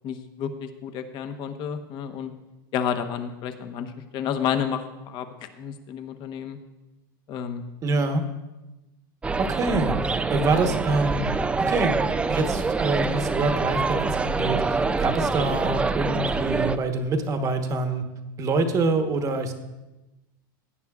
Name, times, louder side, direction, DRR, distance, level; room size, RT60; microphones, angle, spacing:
voice 1, 0.0-2.3 2.7-5.3 5.6-6.6 7.3-7.6, left 8 dB, 45° left, 7 dB, 1.0 m, -30 dB
voice 2, 7.8-8.2 9.4-12.0 12.3-18.0 18.4-19.5, right 3 dB, 30° right, 6 dB, 1.1 m, -26 dB
sound 1, 9.2-16.8, right 4 dB, 10° right, 0.4 m, -25 dB
17.0 x 9.2 x 2.4 m, 1.0 s
supercardioid pair, 130°, 12 cm